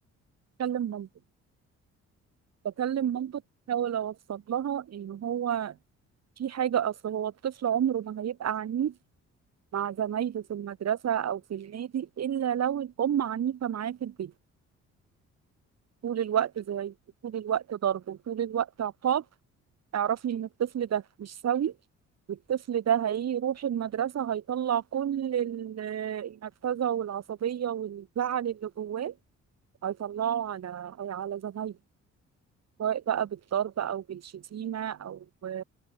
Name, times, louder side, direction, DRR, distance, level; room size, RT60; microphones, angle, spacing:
voice 1, 0.6-1.1 2.6-3.3 3.7-5.8 6.4-8.9 9.7-14.3 16.0-16.9 17.2-19.2 19.9-21.7 22.3-29.1 29.8-31.8 32.8-35.6, right 9 dB, 60° right, 2.9 m, -30 dB
open air
cardioid pair, 90°, 30 cm